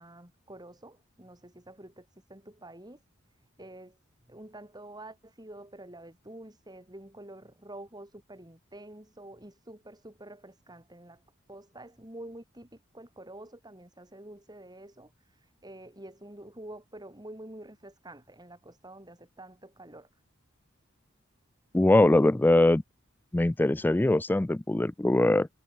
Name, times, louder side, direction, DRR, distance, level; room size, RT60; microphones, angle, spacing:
voice 1, 0.0-3.0 3.6-4.0 4.3-11.2 11.5-20.1, right 1 dB, 20° right, 6.0 m, -48 dB
voice 2, 21.7-22.8 23.3-25.5, left 2 dB, 10° left, 0.3 m, -22 dB
head